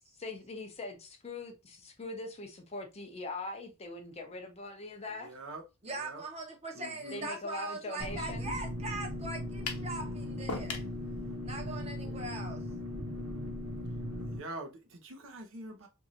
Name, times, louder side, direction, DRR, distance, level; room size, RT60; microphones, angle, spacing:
voice 1, 0.2-5.3 7.1-8.5, left 2 dB, 30° left, 0.5 m, -42 dB
voice 2, 5.2-5.6 6.0-6.2 6.7-7.3 14.2-15.9, right 2 dB, 60° right, 0.6 m, -44 dB
voice 3, 5.8-10.8 11.4-12.6, right 2 dB, 30° right, 0.8 m, -40 dB
sound 1, 8.0-14.4, left 1 dB, 75° right, 1.1 m, -38 dB
sound 2, 9.7-9.9 10.5-10.9, left 4 dB, 85° left, 0.7 m, -36 dB
3.0 x 2.7 x 2.5 m
head